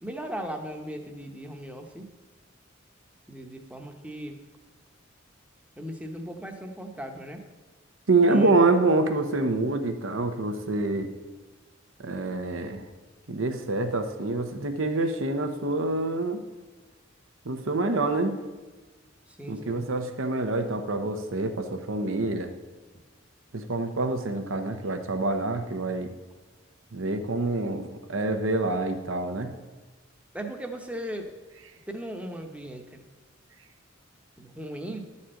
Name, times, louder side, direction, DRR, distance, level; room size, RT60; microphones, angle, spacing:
voice 1, 0.0-2.1 3.3-4.4 5.8-7.4 8.3-8.5 19.4-19.8 30.3-31.3 31.9-33.0 34.4-35.0, right 1 dB, 5° right, 4 dB, 0.8 m, -37 dB
voice 2, 8.1-11.1 12.0-12.8 13.3-16.4 17.4-18.3 19.5-22.5 23.5-26.1 26.9-29.5, right 2 dB, 85° right, 7 dB, 0.9 m, -26 dB
11.5 x 4.3 x 7.6 m, 1.3 s
head